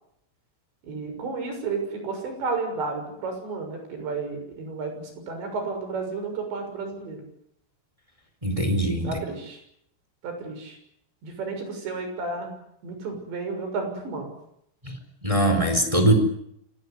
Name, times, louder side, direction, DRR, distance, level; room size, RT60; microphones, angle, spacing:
voice 1, 0.8-7.2 9.0-9.6 10.2-10.8 11.2-12.5 12.8-14.3, right 4 dB, 65° right, 5 dB, 8.6 m, -32 dB
voice 2, 8.4-9.1 14.8-14.9 15.2-16.1, right 1 dB, 5° right, 6 dB, 3.6 m, -21 dB
27.0 x 18.5 x 9.7 m, 0.73 s
omnidirectional pair, 5.5 m